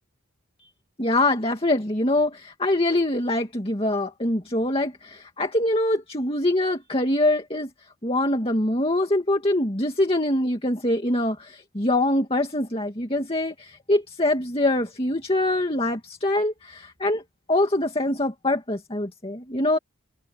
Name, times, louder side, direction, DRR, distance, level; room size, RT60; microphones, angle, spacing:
voice 1, 1.0-7.7 8.0-17.2 17.5-19.8, left 1 dB, 25° left, 2.4 m, -24 dB
head